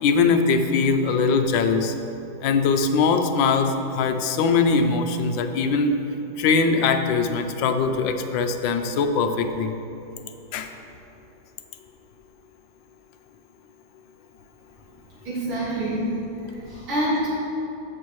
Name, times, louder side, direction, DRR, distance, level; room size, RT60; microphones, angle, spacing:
voice 1, 0.0-1.9 2.4-6.0 6.4-9.7 10.5-10.7, left 4 dB, 75° left, 6 dB, 1.3 m, -21 dB
voice 2, 15.2-16.1 16.4-17.3, right 1 dB, 85° right, -11 dB, 3.3 m, -26 dB
14.0 x 6.2 x 3.1 m, 2.8 s
omnidirectional pair, 2.3 m